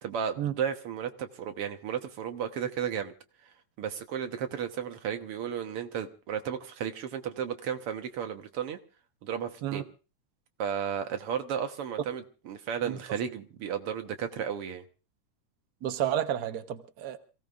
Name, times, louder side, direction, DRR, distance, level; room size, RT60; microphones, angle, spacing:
voice 1, 0.0-3.1 3.8-8.8 9.2-9.9 10.6-14.8, right 8 dB, 55° right, 6 dB, 1.8 m, -34 dB
voice 2, 15.8-17.2, right 11 dB, 85° right, 7 dB, 0.8 m, -31 dB
28.0 x 16.5 x 2.5 m, 0.34 s
omnidirectional pair, 3.5 m